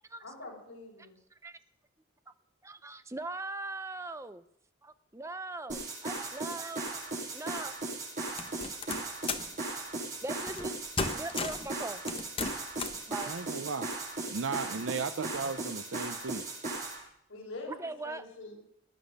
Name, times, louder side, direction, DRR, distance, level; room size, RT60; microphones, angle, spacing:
voice 1, 0.2-1.1 17.3-18.6, left 2 dB, 60° left, -3 dB, 6.1 m, -45 dB
voice 2, 2.6-4.4 4.8-7.7 8.5-9.0 10.2-10.7 11.1-12.0 13.1-13.3 17.8-18.2, right 2 dB, 15° right, 12 dB, 0.6 m, -40 dB
sound 1, 5.7-17.0, right 2 dB, 40° right, 6.9 m, -37 dB
sound 2, 8.4-9.5 10.5-10.7 11.0-11.7 12.1-13.0, left 4 dB, 25° left, 0.9 m, -35 dB
voice 3, 13.3-13.9 14.3-16.4, right 4 dB, 70° right, 11 dB, 0.6 m, -35 dB
20.0 x 10.0 x 6.6 m, 0.76 s
head